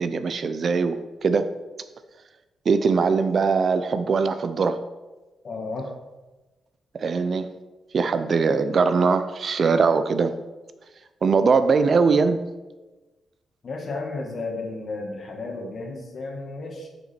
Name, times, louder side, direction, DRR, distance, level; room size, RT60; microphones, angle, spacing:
voice 1, 0.0-1.5 2.7-4.8 6.9-7.5 7.9-10.4 11.2-12.4, right 5 dB, 40° right, 11 dB, 0.4 m, -21 dB
voice 2, 5.4-5.9 13.6-16.9, left 3 dB, 40° left, 2 dB, 1.6 m, -33 dB
8.2 x 6.6 x 4.2 m, 1.2 s
wide cardioid pair, 155°, 0 cm